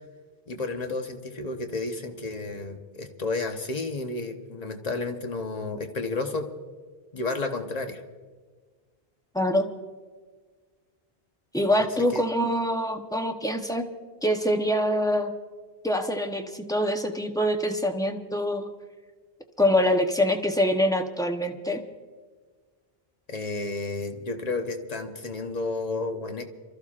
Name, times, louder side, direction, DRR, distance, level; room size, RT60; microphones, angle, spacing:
voice 1, 0.5-6.5 7.1-8.0 12.1-12.2 23.3-26.4, left 3 dB, 40° left, 5 dB, 1.1 m, -31 dB
voice 2, 9.3-9.7 11.5-13.8 14.2-15.3 15.8-18.7 19.6-21.8, equal, 5° left, 4 dB, 0.8 m, -25 dB
29.5 x 14.0 x 2.5 m, 1.5 s
omnidirectional pair, 1.0 m